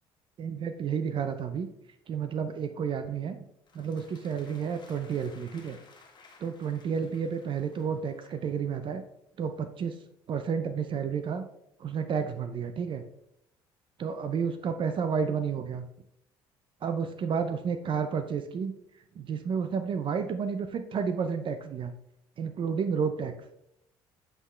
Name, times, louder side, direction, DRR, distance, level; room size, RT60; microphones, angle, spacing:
voice 1, 0.4-1.7 2.1-3.4 3.7-5.8 6.4-9.0 9.4-10.0 10.3-11.4 11.8-13.0 14.0-15.9 16.8-18.7 19.2-21.9 22.4-23.3, right 6 dB, 50° right, 9 dB, 0.5 m, -31 dB
sound 1, 3.7-8.5, left 4 dB, 45° left, 1.5 m, -57 dB
7.8 x 3.7 x 3.2 m, 0.75 s
supercardioid pair, 75°, 11 cm